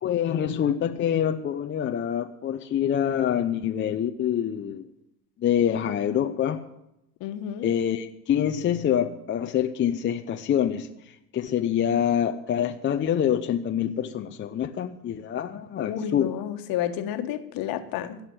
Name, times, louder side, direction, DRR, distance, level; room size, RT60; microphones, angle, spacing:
voice 1, 0.0-4.9 5.4-6.6 7.6-16.3, left 9 dB, 25° left, 0.7 m, -26 dB
voice 2, 7.2-7.7 15.8-18.2, left 10 dB, 45° left, 1.6 m, -31 dB
16.5 x 5.8 x 9.3 m
hypercardioid pair, 95°, 48 cm